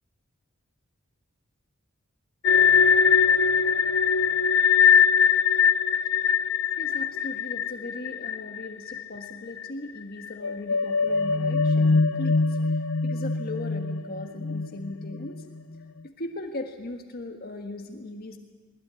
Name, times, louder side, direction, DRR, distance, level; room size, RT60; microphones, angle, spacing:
sound 1, 2.4-9.3 9.6-9.7 10.2-15.6, left 6 dB, 65° left, 0.7 m, -22 dB
voice 1, 6.4-15.4 16.0-18.4, left 2 dB, 50° left, 4 dB, 1.6 m, -38 dB
20.5 x 20.5 x 9.6 m, 1.4 s
head